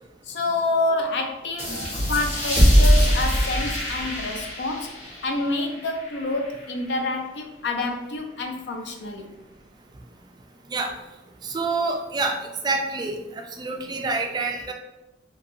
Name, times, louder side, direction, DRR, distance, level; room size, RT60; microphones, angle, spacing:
voice 1, 0.3-9.3, left 2 dB, 80° left, 4 dB, 0.4 m, -28 dB
sound 1, 1.6-6.8, equal, 40° left, 1.2 m, -22 dB
voice 2, 11.4-12.4 12.6-13.1 13.6-14.7, right 3 dB, 25° right, 3 dB, 0.3 m, -26 dB
2.9 x 2.5 x 2.6 m, 0.97 s
head